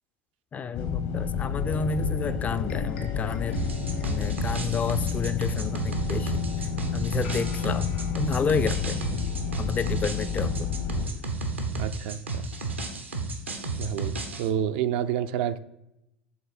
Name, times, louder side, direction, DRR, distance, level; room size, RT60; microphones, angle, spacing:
voice 1, 0.5-3.6 4.0-7.9 8.1-9.0 9.6-10.7, left 5 dB, 25° left, 14 dB, 0.3 m, -30 dB
sound 1, 0.7-11.1, left 6 dB, 60° left, 0.8 m, -30 dB
sound 2, 1.5-9.6, left 4 dB, 75° left, 1.5 m, -45 dB
sound 3, 3.5-14.5, right 3 dB, 85° right, 0.8 m, -32 dB
voice 2, 11.7-12.4 13.8-15.6, right 10 dB, 60° right, 11 dB, 0.3 m, -29 dB
5.6 x 3.7 x 4.9 m, 0.86 s
figure-of-eight pair, 80°, 6 cm